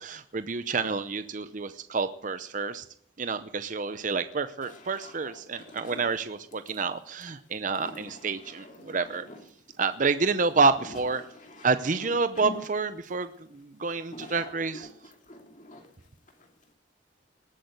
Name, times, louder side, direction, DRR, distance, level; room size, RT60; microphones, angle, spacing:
voice 1, 0.0-2.8 3.2-9.2 9.8-11.2 11.6-14.9, right 4 dB, 40° right, 11 dB, 0.7 m, -28 dB
sound 1, 4.6-16.7, left 1 dB, 40° left, 2.4 m, -47 dB
19.0 x 8.6 x 8.0 m, 0.66 s
head